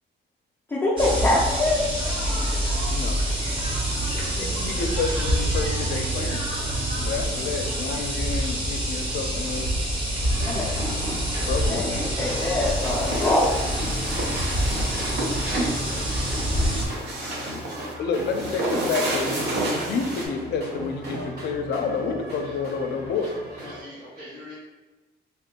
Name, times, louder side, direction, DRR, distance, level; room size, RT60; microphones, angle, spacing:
voice 1, 0.7-1.8 10.5-10.7 11.7-13.4, left 2 dB, 10° left, -8 dB, 0.4 m, -24 dB
sound 1, 1.0-16.9, right 1 dB, 30° right, 0.7 m, -26 dB
voice 2, 4.4-6.4 7.0-9.7 11.4-12.1 17.9-23.3, left 4 dB, 75° left, 4 dB, 0.4 m, -29 dB
sound 2, 10.3-23.8, equal, 70° right, 1.0 m, -37 dB
sound 3, 12.4-20.3, right 1 dB, 85° right, 0.7 m, -31 dB
voice 3, 23.6-24.5, left 1 dB, 55° right, -12 dB, 1.3 m, -42 dB
3.4 x 2.5 x 2.8 m, 1.2 s
cardioid pair, 175°, 18 cm